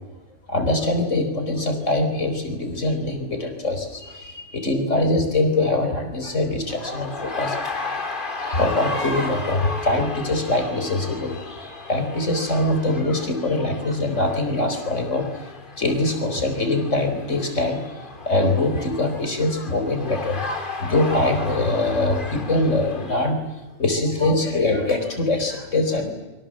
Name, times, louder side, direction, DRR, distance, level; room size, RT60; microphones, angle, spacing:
voice 1, 0.5-7.6 8.5-15.3 15.8-17.8 18.2-20.4 20.8-23.4 23.8-26.1, left 2 dB, 80° left, 6 dB, 4.7 m, -23 dB
sound 1, 6.7-23.3, left 3 dB, 45° left, 2.4 m, -34 dB
29.0 x 24.0 x 7.7 m, 1.1 s
omnidirectional pair, 1.3 m